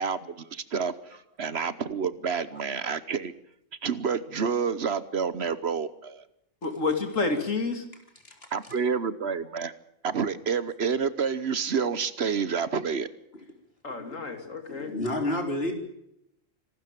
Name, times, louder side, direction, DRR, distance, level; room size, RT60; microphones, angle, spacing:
voice 1, 0.0-3.3 3.8-6.2 8.5-9.7 10.0-13.1, right 6 dB, 55° right, 15 dB, 1.2 m, -29 dB
voice 2, 6.6-7.8 13.8-14.9, left 3 dB, 85° left, 6 dB, 3.1 m, -29 dB
voice 3, 14.7-15.7, left 1 dB, 50° left, 4 dB, 4.2 m, -31 dB
26.0 x 12.5 x 9.1 m, 0.79 s
omnidirectional pair, 1.3 m